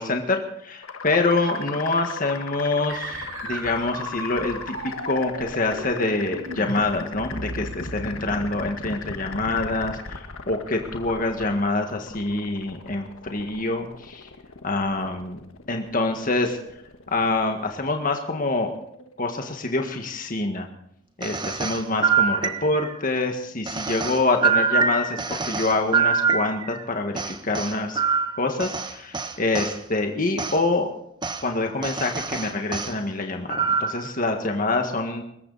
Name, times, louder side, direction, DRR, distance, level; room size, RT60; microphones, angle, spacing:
voice 1, 0.0-4.8 5.0-14.3 14.6-15.4 15.7-16.6 17.1-18.7 19.2-20.7 21.2-28.0 28.4-30.9 31.4-35.2, left 2 dB, 40° left, 4 dB, 1.8 m, -26 dB
sound 1, 0.8-19.6, left 4 dB, 80° left, 1.6 m, -38 dB
sound 2, 2.9-8.6, right 2 dB, 85° right, 3.5 m, -36 dB
sound 3, 21.2-23.0 23.7-26.8 27.2-29.8 30.4-30.6 31.2-31.4 31.8-32.9 33.5-34.1, right 5 dB, 20° right, 1.2 m, -25 dB
24.5 x 14.0 x 4.2 m, 0.74 s
head